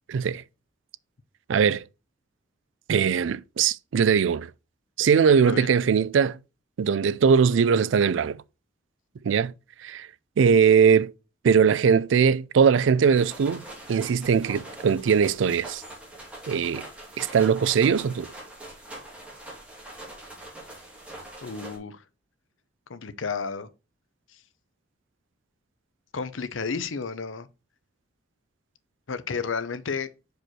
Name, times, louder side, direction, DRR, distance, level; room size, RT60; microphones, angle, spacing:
voice 1, 0.1-0.4 1.5-1.8 2.9-4.5 5.0-6.4 6.8-8.4 9.2-9.5 9.8-10.1 10.4-11.1 11.4-13.6 13.9-15.8 16.5-16.8 17.2-18.3, right 6 dB, 75° right, 0.4 m, -21 dB
sound 1, 13.1-21.8, right 1 dB, 5° right, 2.7 m, -43 dB
voice 2, 21.4-22.0 22.9-23.7 26.1-27.5 29.1-30.1, left 5 dB, 90° left, 0.7 m, -32 dB
6.2 x 5.2 x 4.2 m
head